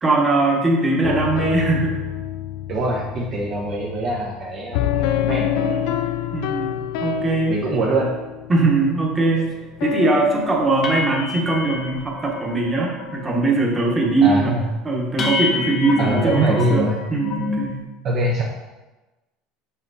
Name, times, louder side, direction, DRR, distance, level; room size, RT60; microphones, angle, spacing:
voice 1, 0.0-2.0 6.3-7.6 8.5-9.5 9.8-14.5 14.8-17.8, right 3 dB, 15° right, -2 dB, 1.2 m, -20 dB
sound 1, 1.0-11.9, left 9 dB, 65° left, 0.4 m, -27 dB
voice 2, 2.7-5.8 7.5-8.1 14.2-14.7 16.0-17.0 18.0-18.4, right 2 dB, 35° right, -2 dB, 0.9 m, -23 dB
sound 2, 9.3-9.4 9.8-10.0 10.3-10.4 10.8-12.6 12.9-13.4 13.7-14.1 14.5-14.6 15.2-17.7, left 4 dB, 30° left, 0.7 m, -28 dB
5.9 x 5.8 x 4.1 m, 1.1 s
cardioid pair, 165°, 0 cm